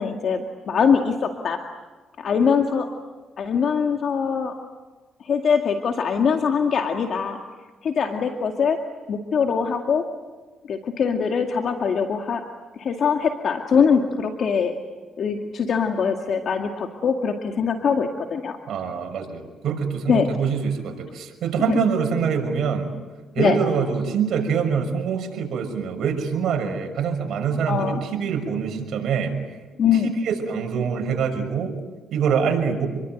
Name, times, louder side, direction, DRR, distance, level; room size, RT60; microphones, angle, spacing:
voice 1, 0.0-1.6 2.2-2.9 3.4-4.5 5.2-7.4 7.8-8.8 9.1-10.0 10.7-12.4 12.8-14.7 15.2-18.6 20.1-20.3 21.7-21.8 23.4-23.6 27.7-28.0 29.8-30.1, left 6 dB, 60° left, 4 dB, 2.1 m, -22 dB
voice 2, 18.7-22.9 23.3-29.3 29.9-31.8 32.1-32.9, right 6 dB, 70° right, 3 dB, 6.2 m, -24 dB
28.5 x 22.5 x 9.2 m, 1.3 s
cardioid pair, 90°, 0 cm